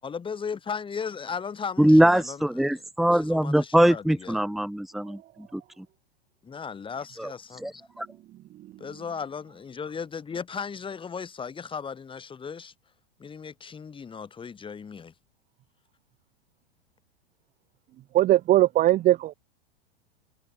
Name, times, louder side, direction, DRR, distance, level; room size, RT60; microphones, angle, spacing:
voice 1, 0.0-2.4 2.7-2.8 3.1-4.4 6.4-7.7 8.8-12.7 13.2-15.1, left 6 dB, 15° left, 6.6 m, -36 dB
voice 2, 1.8-5.9 7.2-8.1, right 1 dB, ahead, 0.7 m, -23 dB
voice 3, 18.1-19.3, right 14 dB, 25° right, 1.3 m, -20 dB
figure-of-eight pair, 95°, 32 cm